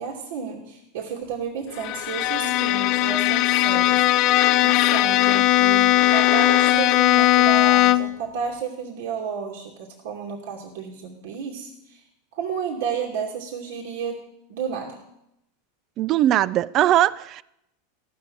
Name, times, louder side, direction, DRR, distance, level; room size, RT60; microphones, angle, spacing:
voice 1, 0.0-4.3 4.6-12.0 12.3-14.2 14.5-15.0, right 6 dB, 70° right, 2.6 m, -32 dB
Bowed string instrument, 1.8-8.2, left 15 dB, 50° left, 0.5 m, -19 dB
voice 2, 16.0-17.4, right 12 dB, 40° right, 0.4 m, -20 dB
14.5 x 6.7 x 9.0 m
hypercardioid pair, 115°, 0 cm